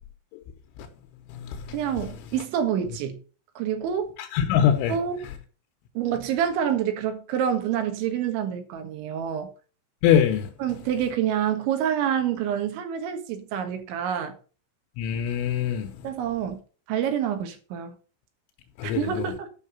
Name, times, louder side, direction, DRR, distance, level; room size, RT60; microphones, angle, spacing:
voice 1, 1.7-3.2 3.6-4.1 4.9-5.2 6.0-9.5 10.6-14.3 16.0-16.6 16.9-17.9 18.8-19.5, right 9 dB, 75° right, 3.8 m, -27 dB
voice 2, 4.3-4.9 10.0-10.5 15.0-15.8 18.8-19.0, left 9 dB, 85° left, 3.3 m, -21 dB
10.0 x 5.9 x 7.0 m
omnidirectional pair, 5.7 m